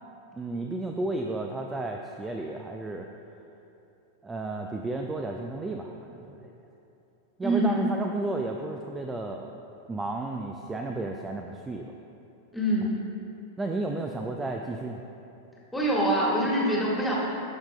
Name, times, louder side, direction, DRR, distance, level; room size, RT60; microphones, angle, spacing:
voice 1, 0.3-3.1 4.2-6.5 7.4-9.6 9.9-11.9 13.6-15.0, right 2 dB, 15° right, 3 dB, 0.4 m, -33 dB
voice 2, 7.4-7.8 12.5-13.0 15.7-17.2, right 1 dB, 5° left, -6 dB, 1.7 m, -25 dB
13.5 x 5.7 x 2.2 m, 2.9 s
figure-of-eight pair, 90°, 0 cm